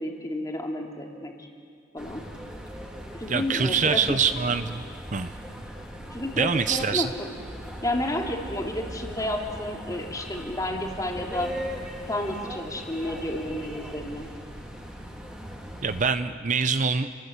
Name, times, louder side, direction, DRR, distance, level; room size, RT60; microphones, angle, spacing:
voice 1, 0.0-1.5 1.9-2.3 3.1-4.0 6.1-7.3 7.8-11.5 12.1-14.3, left 1 dB, 20° left, 1 dB, 2.7 m, -31 dB
sound 1, 2.0-16.0, equal, 5° right, 3.0 m, -39 dB
voice 2, 3.3-4.8 5.1-5.3 6.4-7.1 15.8-17.1, right 5 dB, 40° right, 10 dB, 0.6 m, -24 dB
29.5 x 19.5 x 8.3 m, 2.3 s
head